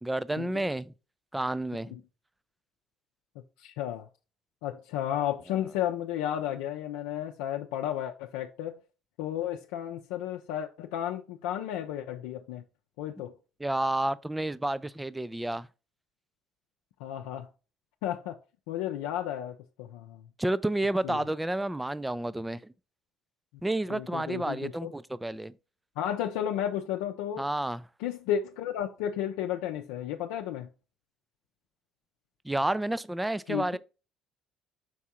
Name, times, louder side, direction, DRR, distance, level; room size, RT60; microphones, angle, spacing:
voice 1, 0.0-0.9 1.3-1.9 13.6-15.7 20.4-22.6 23.6-25.5 27.4-27.8 32.4-33.8, right 1 dB, 10° right, 0.4 m, -30 dB
voice 2, 3.6-4.1 4.6-8.8 9.2-12.6 13.0-13.3 17.0-17.5 18.0-18.4 18.7-20.2 21.0-21.2 23.9-24.9 26.0-27.5 28.0-30.7 33.5-33.7, left 10 dB, 85° left, 0.5 m, -33 dB
6.1 x 3.6 x 4.3 m
supercardioid pair, 85°, 0 cm